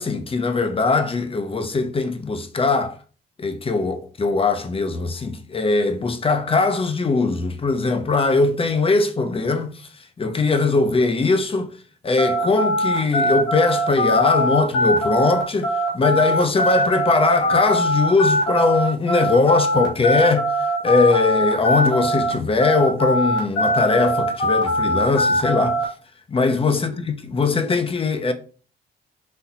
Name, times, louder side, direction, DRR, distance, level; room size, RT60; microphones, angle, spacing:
voice 1, 0.0-3.0 3.4-9.9 10.2-11.7 12.0-25.8 26.3-28.3, left 3 dB, 30° left, 0.8 m, -20 dB
sound 1, 12.2-22.3 22.6-25.8, equal, 70° left, 2.4 m, -21 dB
4.2 x 2.9 x 4.1 m
cardioid pair, 90°, 20 cm